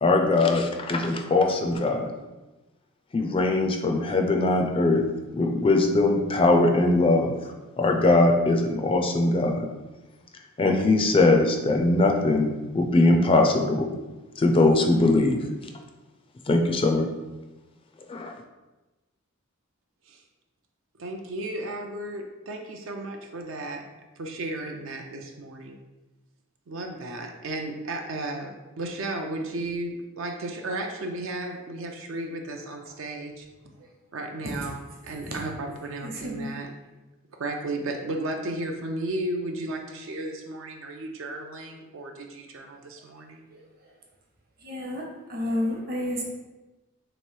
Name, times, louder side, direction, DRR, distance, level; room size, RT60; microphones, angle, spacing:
voice 1, 0.0-2.1 3.1-5.0 5.3-7.3 7.8-9.7 10.6-13.9 14.4-15.4 16.5-17.1 18.1-18.3, left 2 dB, 25° left, 3 dB, 0.4 m, -21 dB
voice 2, 21.0-23.8 24.2-25.8 26.7-33.5 34.1-36.7 37.3-43.5, right 2 dB, 65° right, 3 dB, 0.5 m, -34 dB
voice 3, 36.0-36.5 43.5-43.6 44.6-45.0 45.3-46.2, left 1 dB, 45° right, -1 dB, 0.9 m, -30 dB
3.2 x 3.1 x 4.4 m, 1.1 s
head